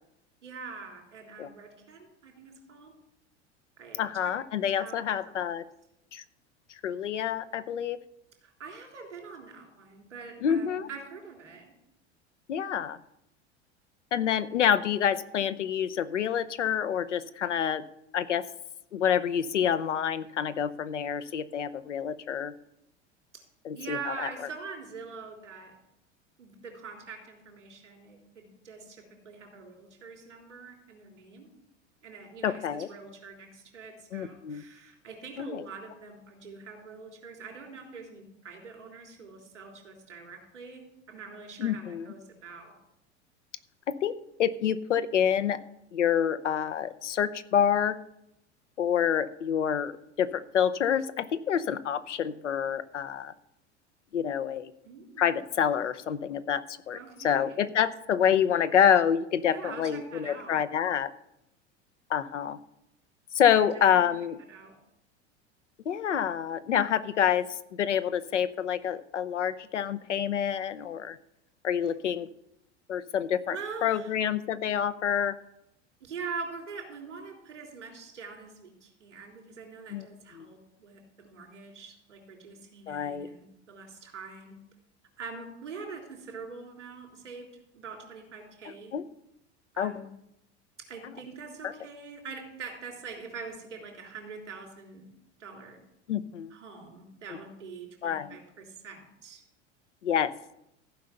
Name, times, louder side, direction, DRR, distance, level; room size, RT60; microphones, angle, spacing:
voice 1, 0.4-2.9 3.8-4.3 4.7-5.4 8.4-11.7 23.3-23.4 23.7-25.7 26.4-31.5 32.0-42.7 54.8-55.3 56.9-57.7 59.5-60.6 63.5-64.0 64.5-64.8 73.5-74.1 76.0-84.6 85.2-87.5 87.7-88.9 89.7-90.1 90.9-95.1 95.4-95.8 96.5-99.4, right 5 dB, 90° right, 2 dB, 3.3 m, -44 dB
voice 2, 4.0-5.6 6.1-6.2 6.8-8.0 10.4-10.9 12.5-13.0 14.1-17.8 18.1-18.5 18.9-22.5 23.6-24.3 32.4-32.9 34.1-34.6 35.4-35.6 41.6-42.1 43.9-44.1 44.4-45.6 45.9-48.0 48.8-53.3 54.1-54.7 55.2-61.1 62.1-62.6 63.3-64.4 65.9-71.2 71.6-72.3 72.9-73.6 73.8-75.4 79.9-80.1 80.4-80.5 82.9-83.3 88.9-89.0 89.8-89.9 91.6-91.7 96.1-96.5 98.0-98.4 100.0-100.3, left 8 dB, 90° left, 13 dB, 0.7 m, -27 dB
14.5 x 5.4 x 6.9 m, 0.83 s
hypercardioid pair, 90°, 35 cm